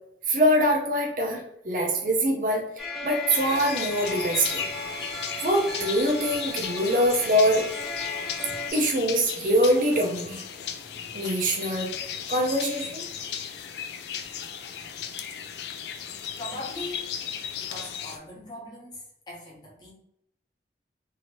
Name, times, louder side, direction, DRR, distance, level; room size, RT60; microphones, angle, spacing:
voice 1, 0.3-2.6 3.0-4.7 5.4-7.6 8.7-10.4 11.1-11.9 12.3-13.0, equal, 50° right, 1 dB, 0.6 m, -24 dB
sound 1, 2.8-8.7, left 3 dB, ahead, 0.5 m, -35 dB
sound 2, 3.3-18.2, left 8 dB, 70° left, 0.3 m, -36 dB
voice 2, 16.3-17.1 17.6-19.9, left 1 dB, 25° left, -4 dB, 1.0 m, -40 dB
2.8 x 2.8 x 3.0 m, 0.74 s
head